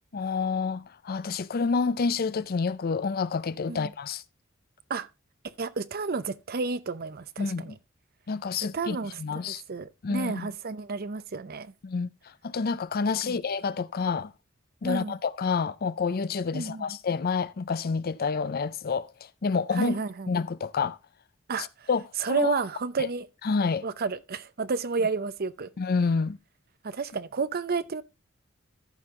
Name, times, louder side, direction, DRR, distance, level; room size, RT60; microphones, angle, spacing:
voice 1, 0.1-4.2 7.4-7.8 8.3-9.6 10.0-10.5 11.8-12.1 12.4-14.3 14.8-19.1 19.4-20.0 20.3-21.0 21.6-22.6 23.0-23.1 23.4-23.8 25.8-26.4, left 5 dB, 45° left, 0.5 m, -28 dB
voice 2, 5.4-7.7 8.7-11.7 13.2-13.4 14.8-15.2 16.5-17.0 19.7-20.3 21.5-21.9 22.2-23.3 23.8-25.7 26.8-28.0, right 4 dB, 50° right, 0.6 m, -31 dB
14.0 x 5.4 x 3.7 m
head